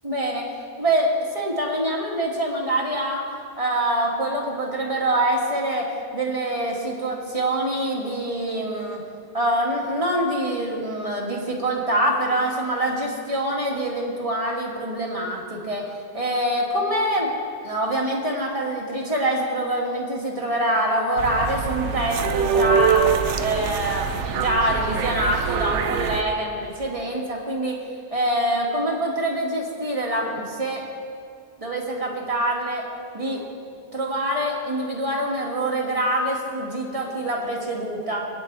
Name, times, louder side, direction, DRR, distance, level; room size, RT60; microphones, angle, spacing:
voice 1, 0.0-0.5 0.8-1.1 1.3-3.2 3.6-9.0 9.3-17.3 17.6-23.1 23.4-27.8 28.1-30.8 31.6-32.9 33.1-33.4 33.9-38.3, right 1 dB, 30° right, -2 dB, 2.1 m, -25 dB
sound 1, 21.2-26.2, right 7 dB, 80° right, 1.0 m, -24 dB
25.0 x 9.7 x 3.4 m, 2.3 s
omnidirectional pair, 1.2 m